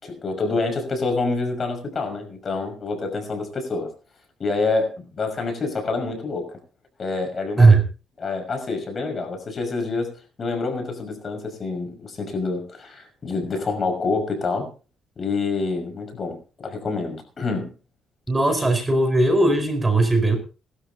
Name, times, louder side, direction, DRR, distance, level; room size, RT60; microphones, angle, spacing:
voice 1, 0.0-3.9 4.4-6.5 7.0-7.8 8.2-10.1 10.4-14.7 15.2-16.4 16.6-17.7 18.6-18.7, left 3 dB, 40° left, 5 dB, 5.7 m, -27 dB
voice 2, 18.3-20.4, right 2 dB, 20° right, 7 dB, 4.7 m, -17 dB
21.5 x 13.0 x 2.9 m, 0.34 s
cardioid pair, 90°, 0 cm